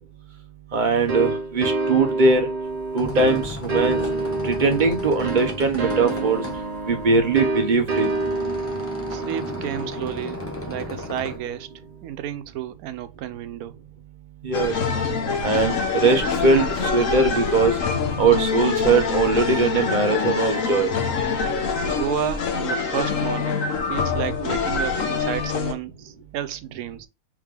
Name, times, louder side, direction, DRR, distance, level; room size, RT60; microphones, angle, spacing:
voice 1, 0.7-2.5 2.9-4.0 4.4-6.4 6.9-8.1 14.4-14.7 15.4-17.8 18.2-20.9, right 4 dB, 40° right, 0.8 m, -21 dB
sound 1, 1.1-11.6, right 3 dB, 60° right, 0.4 m, -28 dB
sound 2, 2.7-11.4, left 2 dB, 10° left, 0.7 m, -35 dB
voice 2, 9.1-10.4 10.7-11.7 12.0-13.7 21.8-27.1, right 11 dB, 90° right, 1.1 m, -31 dB
sound 3, 14.5-25.7, left 5 dB, 65° left, 1.2 m, -25 dB
3.6 x 3.5 x 3.2 m
omnidirectional pair, 1.5 m